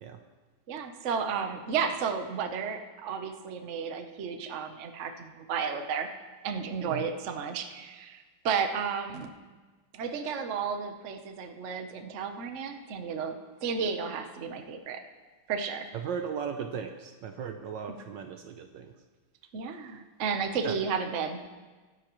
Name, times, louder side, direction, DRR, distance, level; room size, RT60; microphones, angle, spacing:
voice 1, 0.7-6.1 6.4-9.3 9.9-13.3 13.6-15.0 15.5-15.9 17.9-18.0 19.5-21.4, right 6 dB, 55° right, 6 dB, 0.8 m, -33 dB
voice 2, 15.9-18.9 20.6-20.8, right 7 dB, 70° right, 6 dB, 1.2 m, -37 dB
20.5 x 10.0 x 3.1 m, 1.3 s
omnidirectional pair, 2.4 m